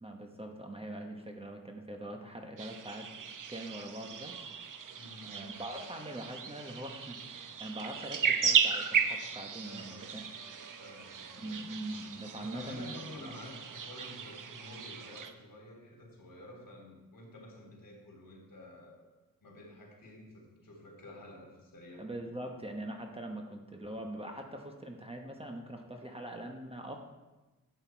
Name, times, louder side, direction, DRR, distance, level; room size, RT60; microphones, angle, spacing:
voice 1, 0.0-3.1 3.5-4.3 5.2-10.0 11.4-13.3 22.0-27.0, right 1 dB, 15° right, 2 dB, 1.0 m, -42 dB
sound 1, 2.6-15.3, right 6 dB, 65° right, 0.8 m, -35 dB
voice 2, 4.9-5.6 9.6-10.2 10.8-11.6 12.4-19.0 19.4-22.1, left 1 dB, 70° left, -1 dB, 3.4 m, -50 dB
12.0 x 8.1 x 4.5 m, 1.1 s
wide cardioid pair, 140°, 35 cm